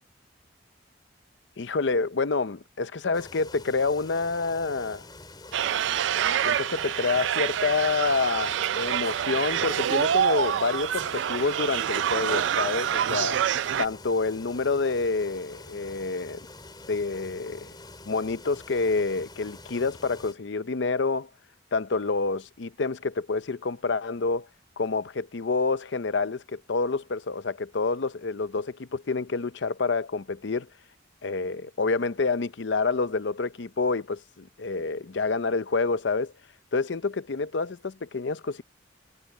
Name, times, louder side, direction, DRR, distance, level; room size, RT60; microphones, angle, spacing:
voice 1, 1.6-5.0 6.4-13.4 13.8-16.4 16.9-17.7 18.1-21.3 21.7-24.5 24.8-30.7 31.2-36.3 36.7-38.6, left 4 dB, 75° left, 0.6 m, -28 dB
sound 1, 3.1-20.3, left 2 dB, 20° left, 5.4 m, -46 dB
sound 2, 5.5-13.9, right 9 dB, 80° right, 0.4 m, -26 dB
head